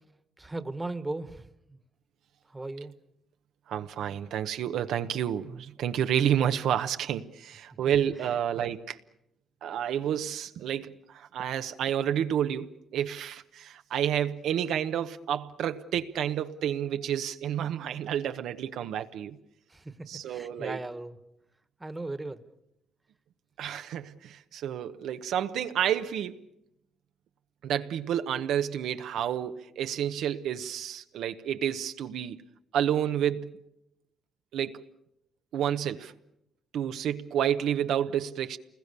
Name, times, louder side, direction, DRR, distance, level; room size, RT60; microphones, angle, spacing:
voice 1, 0.4-1.8 2.5-2.9 8.5-8.7 19.7-21.2 21.8-22.4, right 2 dB, 15° right, 1.5 m, -37 dB
voice 2, 3.7-9.0 9.6-19.4 20.1-20.8 23.6-26.4 27.6-32.4 32.7-33.6 34.5-34.9 35.5-36.1 36.7-38.6, right 9 dB, 80° right, 1.0 m, -30 dB
28.0 x 21.0 x 6.8 m
cardioid pair, 90°, 0 cm